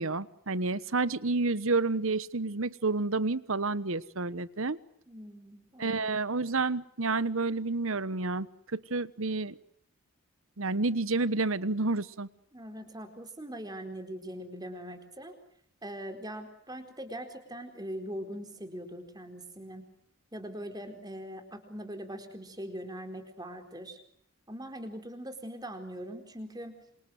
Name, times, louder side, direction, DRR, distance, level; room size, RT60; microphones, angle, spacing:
voice 1, 0.0-4.8 5.8-9.6 10.6-12.3, right 3 dB, 75° right, 17 dB, 1.2 m, -30 dB
voice 2, 5.1-6.1 12.5-15.3 15.8-19.8 20.3-24.0 24.5-26.8, equal, 20° right, 6 dB, 4.3 m, -41 dB
27.5 x 27.0 x 7.9 m, 0.70 s
head